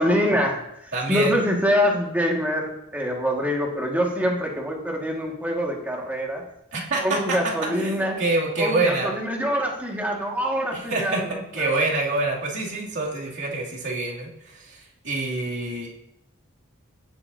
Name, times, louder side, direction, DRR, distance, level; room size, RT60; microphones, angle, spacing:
voice 1, 0.0-6.4 7.0-8.2 8.6-11.8, equal, 10° right, -1 dB, 1.8 m, -25 dB
voice 2, 0.9-1.3 6.7-7.2 7.7-9.1 10.7-14.8 15.0-15.9, right 2 dB, 60° right, -4 dB, 2.7 m, -26 dB
16.5 x 7.1 x 2.7 m, 0.78 s
head